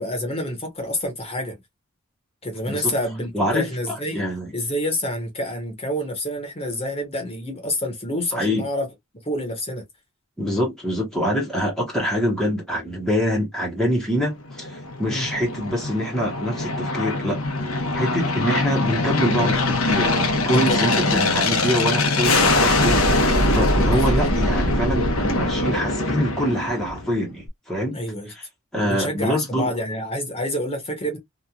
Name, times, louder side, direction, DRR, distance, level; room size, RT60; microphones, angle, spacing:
voice 1, 0.0-1.6 2.4-4.2 4.5-8.9 9.2-9.8 15.1-15.2 20.5-20.8 23.8-24.3 27.9-28.3 28.8-31.2, left 1 dB, 30° left, 1.1 m, -28 dB
voice 2, 3.3-3.7 4.1-4.5 8.3-8.7 10.4-17.4 17.7-28.0 28.7-29.7, equal, 5° left, 1.0 m, -25 dB
Aircraft, 14.5-27.2, left 2 dB, 70° left, 0.9 m, -22 dB
3.0 x 2.4 x 2.3 m
head